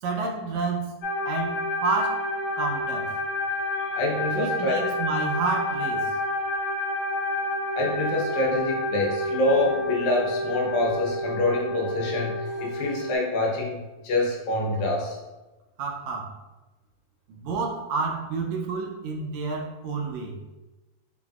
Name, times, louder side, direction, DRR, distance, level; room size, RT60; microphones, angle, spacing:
voice 1, 0.0-0.9 1.2-2.3 2.6-3.1 4.3-6.1 15.8-16.3 17.3-20.4, right 4 dB, 80° right, 0 dB, 1.7 m, -29 dB
sound 1, 1.0-13.2, left 1 dB, 60° left, 2.0 m, -29 dB
voice 2, 3.9-4.9 7.8-15.2, left 2 dB, 80° left, -1 dB, 2.1 m, -26 dB
6.0 x 2.5 x 2.3 m, 1.1 s
omnidirectional pair, 3.4 m